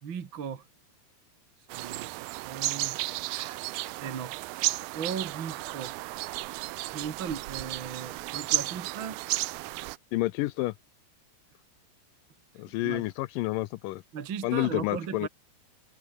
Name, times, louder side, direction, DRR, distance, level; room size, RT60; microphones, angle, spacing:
voice 1, 0.0-0.6 1.7-2.1 2.4-3.0 3.2-3.6 3.9-4.4 4.9-5.9 6.9-9.2 12.8-13.1 14.1-15.3, right 7 dB, 40° right, 2.0 m, -37 dB
sound 1, 1.7-10.0, right 20 dB, 80° right, 2.3 m, -33 dB
voice 2, 10.1-10.7 12.6-14.0 14.4-15.3, left 18 dB, 85° left, 1.9 m, -29 dB
omnidirectional pair, 4.5 m